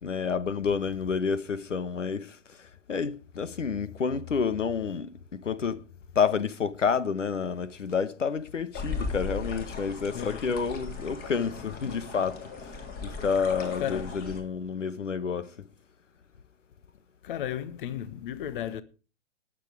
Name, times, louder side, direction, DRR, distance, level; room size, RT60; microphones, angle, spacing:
voice 1, 0.0-5.8 6.1-15.7, left 6 dB, 75° left, 1.2 m, -29 dB
sound 1, 8.7-14.4, left 4 dB, 25° left, 3.2 m, -37 dB
voice 2, 10.1-10.5 13.6-14.1 17.2-18.8, left 10 dB, 45° left, 1.1 m, -34 dB
19.5 x 7.6 x 4.8 m
figure-of-eight pair, 120°, 37 cm